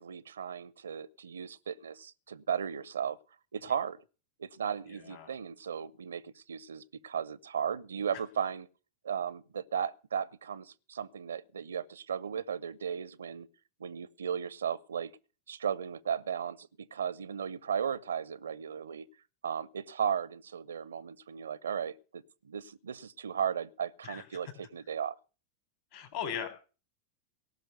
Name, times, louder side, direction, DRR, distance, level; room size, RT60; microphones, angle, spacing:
voice 1, 0.0-3.2 3.5-4.0 4.4-8.7 9.0-13.5 13.8-15.1 15.5-19.1 19.4-25.2, right 8 dB, 70° right, 0.6 m, -36 dB
voice 2, 4.9-5.3 24.0-24.2 25.9-26.5, left 8 dB, 50° left, 3.6 m, -38 dB
18.0 x 6.1 x 8.0 m
figure-of-eight pair, 90°, 0 cm